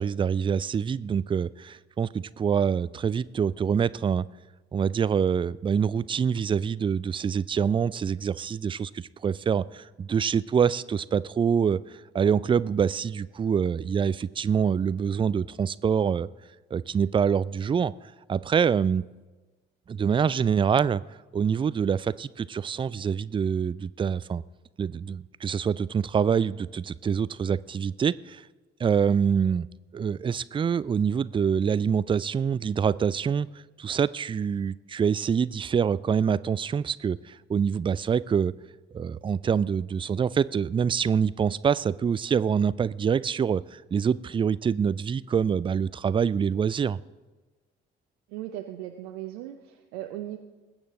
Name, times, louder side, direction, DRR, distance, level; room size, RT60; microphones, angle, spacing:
voice 1, 0.0-4.3 4.7-11.8 12.1-16.3 16.7-19.0 19.9-21.0 21.3-24.4 24.8-28.5 28.8-29.7 29.9-33.5 33.8-38.5 38.9-47.0, right 7 dB, 15° right, 19 dB, 0.3 m, -25 dB
voice 2, 48.3-50.4, right 13 dB, 70° right, 4 dB, 0.8 m, -37 dB
20.5 x 8.8 x 3.8 m, 1.2 s
figure-of-eight pair, 40°, 32 cm